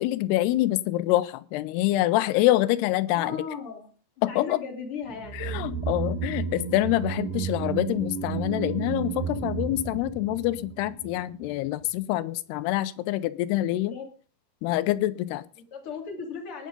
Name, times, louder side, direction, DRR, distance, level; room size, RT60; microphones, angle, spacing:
voice 1, 0.0-3.4 4.2-4.6 5.3-13.9 14.6-15.4, left 16 dB, 85° left, 16 dB, 2.8 m, -26 dB
voice 2, 3.1-3.9 4.3-5.4 13.7-14.1 15.6-16.7, left 5 dB, 35° left, 3 dB, 3.1 m, -37 dB
sound 1, 5.1-11.5 11.8-11.9, right 7 dB, 60° right, 3.9 m, -32 dB
19.5 x 6.6 x 5.2 m, 0.39 s
omnidirectional pair, 4.6 m